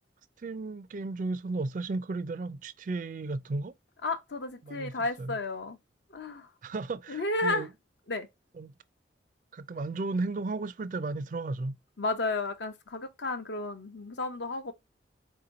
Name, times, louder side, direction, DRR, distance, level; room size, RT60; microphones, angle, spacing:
voice 1, 0.4-3.7 4.6-5.4 6.6-7.7 8.5-8.7 9.5-11.8, right 3 dB, 45° right, 0.4 m, -34 dB
voice 2, 4.0-5.8 6.1-6.5 7.1-7.7 8.1-8.3 12.0-14.7, left 2 dB, 70° left, 0.8 m, -32 dB
4.5 x 2.9 x 3.7 m
head